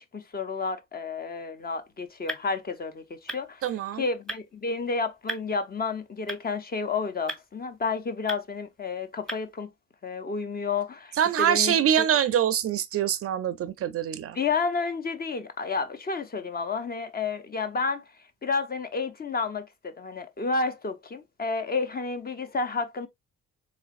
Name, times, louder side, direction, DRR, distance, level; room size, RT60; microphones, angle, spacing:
voice 1, 0.0-3.6 4.0-9.7 10.0-11.7 14.4-18.0 18.4-23.1, left 4 dB, 30° left, 0.7 m, -31 dB
sound 1, 1.5-9.6, right 2 dB, ahead, 0.9 m, -42 dB
voice 2, 3.6-4.1 11.2-14.4, right 9 dB, 50° right, 0.4 m, -24 dB
3.9 x 3.1 x 2.4 m
cardioid pair, 90°, 30 cm